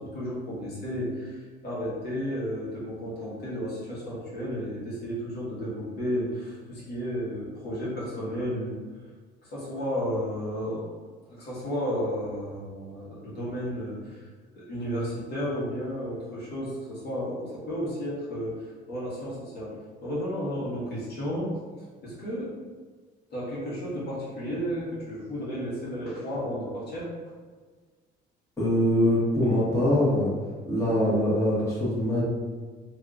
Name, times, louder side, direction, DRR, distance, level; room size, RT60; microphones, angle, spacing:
voice 1, 0.0-8.8 9.4-14.2 14.5-19.7 20.0-21.6 22.0-22.5 23.3-27.1, equal, 50° left, -8 dB, 1.4 m, -33 dB
voice 2, 28.6-30.3 30.7-32.2, left 1 dB, 15° left, -8 dB, 1.3 m, -23 dB
2.7 x 2.6 x 3.5 m, 1.5 s
supercardioid pair, 80°, 21 cm